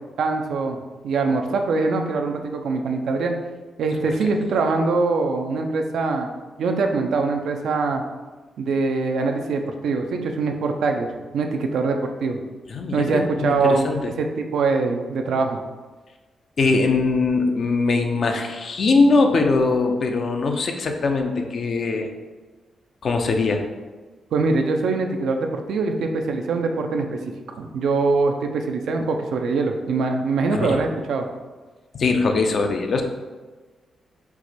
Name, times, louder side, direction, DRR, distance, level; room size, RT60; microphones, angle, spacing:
voice 1, 0.2-0.8 1.0-3.3 3.8-6.3 6.6-8.0 8.6-11.1 11.3-12.4 12.9-15.6 24.3-27.2 27.6-31.3, right 3 dB, 80° right, 4 dB, 0.4 m, -23 dB
voice 2, 12.7-14.1 16.6-22.1 23.0-23.6 30.5-30.8 31.9-33.0, left 3 dB, 60° left, 4 dB, 0.5 m, -21 dB
4.6 x 2.2 x 4.1 m, 1.3 s
cardioid pair, 75°, 0 cm